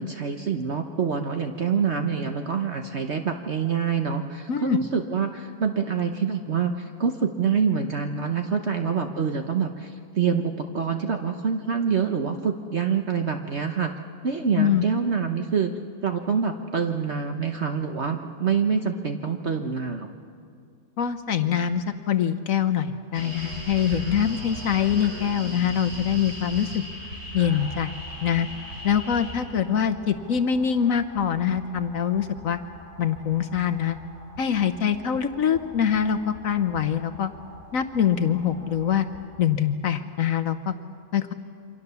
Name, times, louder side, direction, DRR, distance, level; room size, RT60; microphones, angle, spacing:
voice 1, 0.0-13.9 14.2-15.7 16.0-20.1, right 6 dB, 50° right, 5 dB, 1.2 m, -26 dB
voice 2, 21.0-26.8 27.3-27.9 28.2-28.5 28.8-32.6 33.0-34.0 34.4-37.3 37.7-39.1 39.4-40.7 41.1-41.3, left 8 dB, 65° left, 9 dB, 1.2 m, -24 dB
sound 1, 23.1-39.2, right 1 dB, 80° right, 6.1 m, -40 dB
28.5 x 24.5 x 6.9 m, 2.3 s
omnidirectional pair, 1.6 m